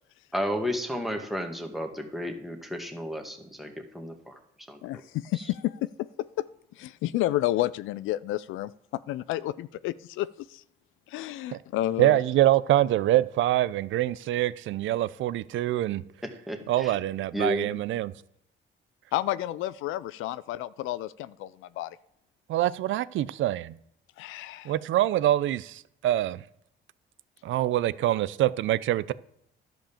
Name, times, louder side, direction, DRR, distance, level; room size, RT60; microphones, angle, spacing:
voice 1, 0.3-4.4 4.7-4.8 5.4-5.5 16.2-17.0 17.3-17.7, equal, ahead, 1.9 m, -32 dB
voice 2, 4.8-6.1 6.4-6.5 6.8-8.7 9.1-10.6 11.1-12.2 19.1-22.0 24.2-24.7, left 14 dB, 85° left, 0.4 m, -31 dB
voice 3, 12.0-16.0 16.7-18.1 22.5-23.7 24.7-26.4 27.4-29.1, right 14 dB, 75° right, 0.5 m, -25 dB
11.5 x 5.2 x 7.1 m
cardioid pair, 90°, 20 cm